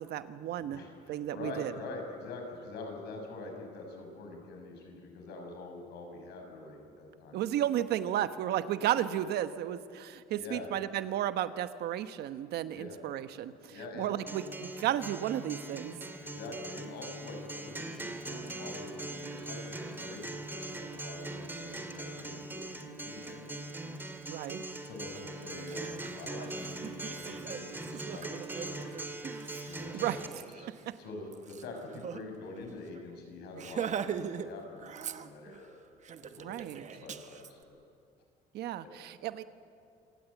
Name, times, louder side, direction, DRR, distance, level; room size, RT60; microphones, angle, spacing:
voice 1, 0.0-0.8 1.1-1.7 7.3-16.0 24.3-24.6 29.9-30.2 30.9-31.0 36.4-36.8 38.5-39.4, right 11 dB, 75° right, 11 dB, 1.1 m, -33 dB
voice 2, 0.6-7.4 10.3-10.7 12.7-13.0 13.7-14.1 16.2-24.0 24.8-30.2 30.6-30.7 31.0-34.9 35.1-35.8 36.2-37.8, left 2 dB, 75° left, 3 dB, 6.0 m, -45 dB
Acoustic guitar, 14.3-30.3, right 2 dB, 10° right, 2.1 m, -41 dB
Laughter, 25.1-25.2 25.6-32.2 32.5-32.7 32.9-33.1 33.5-34.5 34.8-35.6 36.0-37.5, right 8 dB, 45° right, 1.1 m, -41 dB
26.5 x 19.0 x 8.3 m, 2.4 s
cardioid pair, 110°, 17 cm